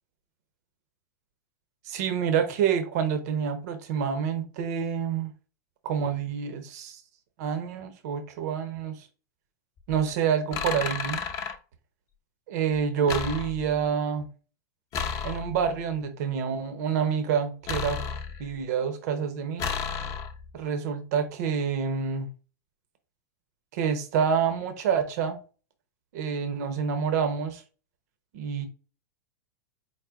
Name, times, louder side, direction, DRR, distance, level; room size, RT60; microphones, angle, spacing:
voice 1, 1.8-5.3 5.8-7.0 7.4-9.1 9.9-11.2 12.5-14.3 15.2-18.0 18.4-19.7 20.5-22.3 23.7-25.4 26.1-27.6 28.3-28.7, right 7 dB, 60° right, 0.7 m, -27 dB
sound 1, 9.8-10.0 10.5-11.6 13.1-13.9 14.9-15.8 17.7-18.6 19.6-20.5, left 6 dB, 35° left, 0.6 m, -32 dB
4.8 x 2.1 x 3.6 m
hypercardioid pair, 125°, 10 cm